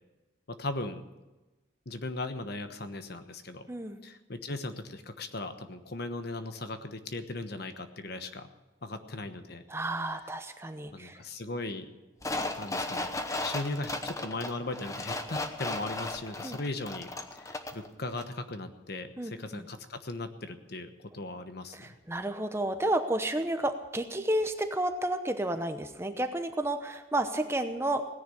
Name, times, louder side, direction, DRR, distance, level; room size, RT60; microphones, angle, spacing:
voice 1, 0.5-1.0 1.9-3.6 4.0-8.5 8.8-9.6 10.9-11.9 12.6-13.1 13.4-21.9, left 2 dB, 50° left, 8 dB, 1.1 m, -38 dB
voice 2, 3.7-4.0 9.7-11.2 16.4-16.6 19.2-19.7 21.7-28.1, right 1 dB, 15° right, 8 dB, 0.8 m, -31 dB
sound 1, 12.2-17.9 18.2-18.3, left 2 dB, 15° left, 0.9 m, -35 dB
17.5 x 10.0 x 6.9 m, 1.1 s
head